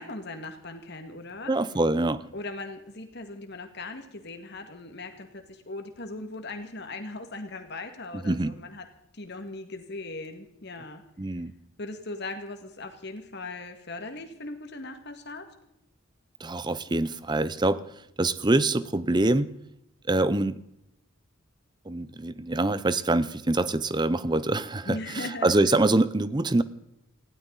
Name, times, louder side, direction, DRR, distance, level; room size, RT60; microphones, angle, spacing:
voice 1, 0.0-1.5 2.3-8.9 9.1-11.0 11.8-15.5 24.9-25.5, left 2 dB, 55° left, 6 dB, 2.0 m, -39 dB
voice 2, 1.5-2.2 8.1-8.6 11.2-11.5 16.4-17.8 18.2-19.5 20.1-20.6 21.9-26.6, right 2 dB, 20° right, 16 dB, 0.6 m, -25 dB
20.0 x 16.0 x 4.0 m, 0.80 s
head